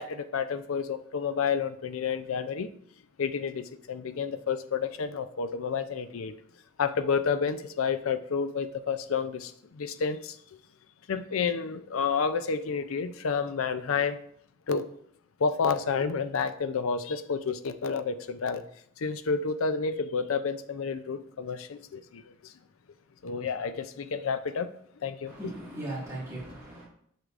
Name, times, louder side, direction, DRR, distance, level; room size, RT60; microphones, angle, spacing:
voice 1, 0.0-2.7 3.2-6.3 6.8-10.4 11.1-14.2 14.7-14.9 15.4-18.7 19.0-22.5 23.2-24.7 25.0-25.3, left 5 dB, 85° left, 0.5 m, -30 dB
voice 2, 25.3-26.8, right 1 dB, 15° right, 2.0 m, -38 dB
7.8 x 6.6 x 2.5 m
head